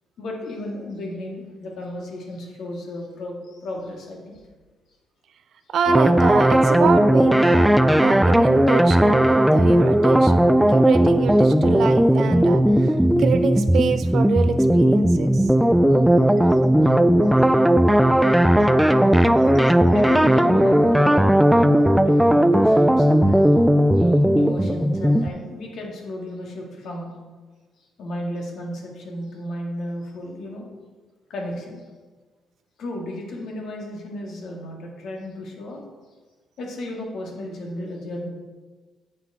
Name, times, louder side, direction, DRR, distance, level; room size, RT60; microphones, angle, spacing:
voice 1, 0.2-4.4 19.9-23.6 24.0-24.1 24.3-27.1 27.8-30.7 31.3-31.8 32.8-35.8 36.6-38.3, left 1 dB, 70° left, 0 dB, 1.9 m, -33 dB
voice 2, 5.7-7.7 8.0-10.4 10.7-15.5, right 6 dB, 65° right, 9 dB, 0.6 m, -26 dB
sound 1, 5.9-25.3, right 1 dB, 5° right, 0.3 m, -16 dB
7.7 x 5.7 x 4.6 m, 1.4 s
cardioid pair, 90°, 0 cm